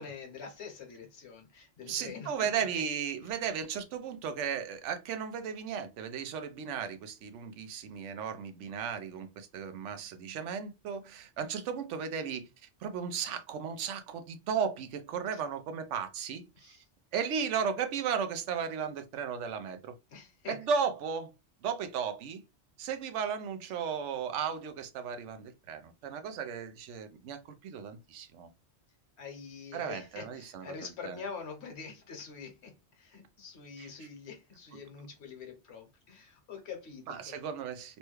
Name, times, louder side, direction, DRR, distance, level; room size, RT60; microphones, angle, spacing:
voice 1, 0.0-2.5 15.3-15.4 16.6-16.8 20.1-20.6 29.2-37.4, left 5 dB, 70° left, 1.2 m, -45 dB
voice 2, 1.9-12.5 12.8-16.8 17.1-19.9 20.5-21.3 21.6-22.4 22.8-28.5 29.7-30.7 31.0-31.2 33.8-33.9 37.1-38.0, right 7 dB, 90° right, 0.9 m, -35 dB
3.1 x 2.2 x 3.0 m
omnidirectional pair, 1.2 m